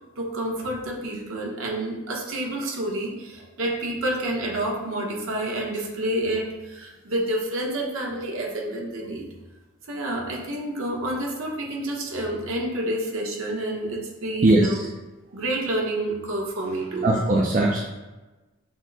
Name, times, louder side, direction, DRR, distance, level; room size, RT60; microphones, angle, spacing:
voice 1, 0.2-9.2 9.9-14.8 15.3-17.1 17.3-17.4, right 1 dB, 70° right, -1 dB, 0.9 m, -29 dB
voice 2, 14.4-14.9 17.0-17.8, right 2 dB, 35° right, -2 dB, 0.4 m, -19 dB
6.1 x 2.1 x 3.9 m, 1.2 s
head